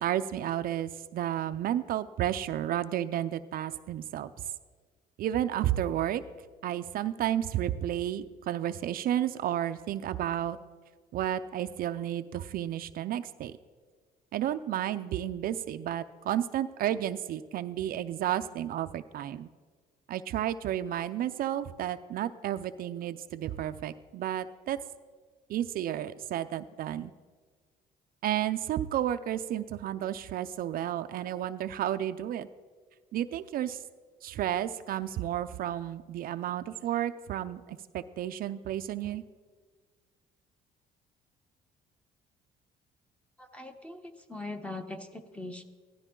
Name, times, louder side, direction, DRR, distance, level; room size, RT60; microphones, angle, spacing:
voice 1, 0.0-4.3 5.2-6.2 6.6-10.6 11.1-13.5 14.3-19.5 20.1-24.8 25.5-27.1 28.2-32.5 33.1-33.8 34.2-39.2, right 11 dB, 60° right, 10 dB, 0.5 m, -32 dB
voice 2, 43.4-45.6, left 2 dB, 5° left, 7 dB, 1.0 m, -41 dB
16.0 x 12.5 x 3.8 m, 1.6 s
cardioid pair, 110°, 17 cm